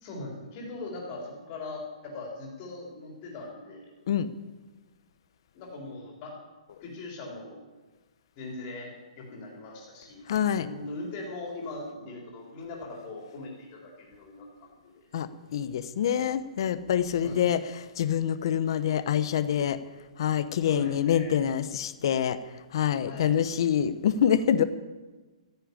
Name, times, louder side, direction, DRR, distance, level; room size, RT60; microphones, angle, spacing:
voice 1, 0.0-3.8 5.6-6.3 6.8-7.6 8.4-8.9 9.2-10.2 10.6-14.7 17.2-17.4 20.6-21.4 23.1-23.3, left 2 dB, 25° left, 0 dB, 3.8 m, -40 dB
voice 2, 10.3-10.7 15.1-19.8 20.2-22.4 22.7-24.6, left 9 dB, 40° left, 14 dB, 0.8 m, -26 dB
14.0 x 10.0 x 9.7 m, 1.2 s
hypercardioid pair, 175°, 4 cm